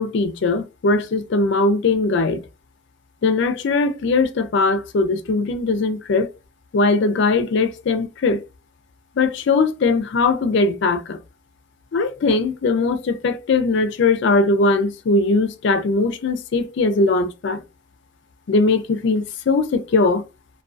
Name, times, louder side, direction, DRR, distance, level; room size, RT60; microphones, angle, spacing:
voice 1, 0.0-2.4 3.2-6.3 6.7-8.4 9.2-11.2 11.9-17.6 18.5-20.2, left 3 dB, 55° left, 0.4 m, -20 dB
2.2 x 2.2 x 2.5 m
head